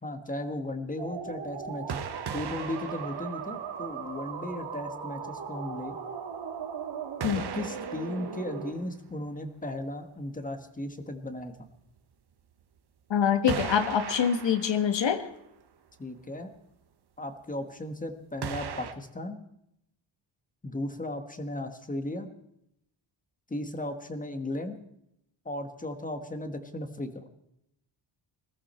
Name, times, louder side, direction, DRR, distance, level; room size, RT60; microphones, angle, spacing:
voice 1, 0.0-2.0 2.3-6.0 7.5-11.7 16.0-16.5 17.2-19.4 20.6-22.3 23.5-24.7 25.4-27.2, left 1 dB, 15° left, 7 dB, 1.4 m, -36 dB
sound 1, 1.0-8.7, right 6 dB, 70° right, 3.5 m, -38 dB
sound 2, 1.9-4.1 4.5-4.6 7.2-9.1 12.0-12.1 13.5-15.4 15.7-15.8 18.4-18.9, right 7 dB, 55° right, 1.3 m, -38 dB
voice 2, 13.1-15.2, left 8 dB, 65° left, 9 dB, 1.5 m, -25 dB
21.0 x 14.0 x 4.4 m, 0.77 s
wide cardioid pair, 165°, 47 cm